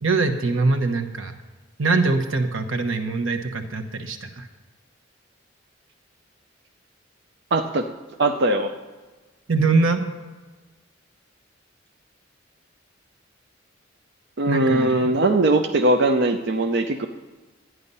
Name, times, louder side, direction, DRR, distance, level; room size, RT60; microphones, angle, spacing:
voice 1, 0.0-1.3 1.8-4.5 9.5-10.0 14.5-15.1, right 3 dB, 90° right, 8 dB, 1.1 m, -23 dB
voice 2, 7.5-7.9 8.2-8.7 14.4-17.1, right 2 dB, 60° right, 6 dB, 0.6 m, -20 dB
12.5 x 9.5 x 5.5 m, 1.3 s
head